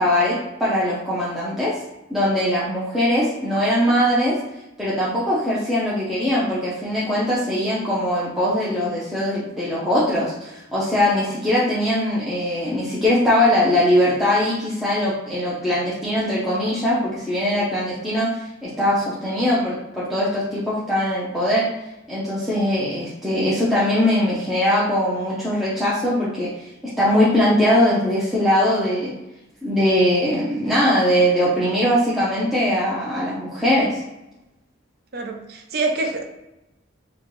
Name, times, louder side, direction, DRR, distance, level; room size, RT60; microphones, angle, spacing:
voice 1, 0.0-1.8 2.1-4.4 4.8-18.3 18.6-21.7 22.1-26.7 27.0-29.1 29.6-34.0, left 1 dB, ahead, -9 dB, 0.6 m, -21 dB
voice 2, 35.1-36.2, right 3 dB, 50° right, 4 dB, 0.5 m, -25 dB
4.2 x 2.2 x 3.0 m, 0.97 s
head